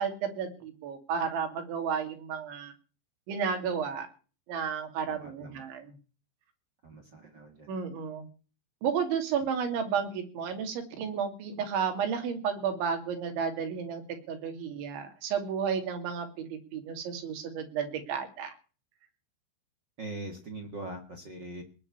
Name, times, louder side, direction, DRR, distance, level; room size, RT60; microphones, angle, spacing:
voice 1, 0.0-2.7 3.3-4.1 4.5-5.9 7.7-8.3 8.8-18.5, right 6 dB, 80° right, 6 dB, 5.1 m, -32 dB
voice 2, 5.0-5.7 6.8-7.8 20.0-21.6, right 2 dB, 65° right, 5 dB, 1.1 m, -42 dB
20.0 x 6.8 x 9.6 m, 0.38 s
omnidirectional pair, 5.3 m